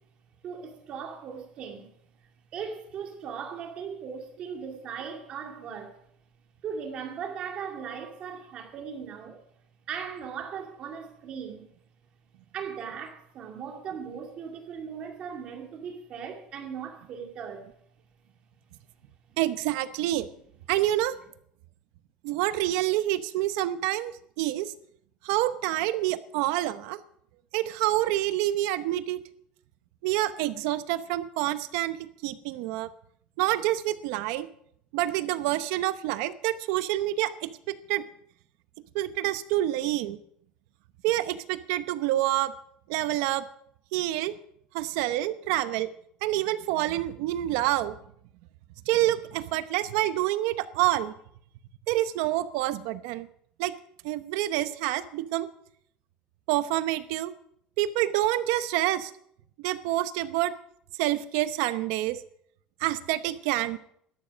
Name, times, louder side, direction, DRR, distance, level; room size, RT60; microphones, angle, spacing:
voice 1, 0.4-1.9 2.5-6.0 6.6-9.4 9.9-11.7 12.5-17.7, right 7 dB, 40° right, 2.2 m, -38 dB
voice 2, 19.4-20.3 20.7-21.1 22.2-24.1 24.4-24.7 25.2-27.0 27.5-29.2 30.0-32.9 33.4-34.5 34.9-38.0 38.9-40.2 41.0-42.5 42.9-43.4 43.9-44.3 44.7-45.9 46.2-47.9 48.9-51.1 51.9-53.3 53.6-53.7 54.0-55.5 56.5-57.3 57.8-59.1 59.6-60.5 61.0-62.2 62.8-63.8, right 15 dB, 80° right, 0.9 m, -27 dB
12.5 x 12.0 x 5.2 m
cardioid pair, 170°, 3 cm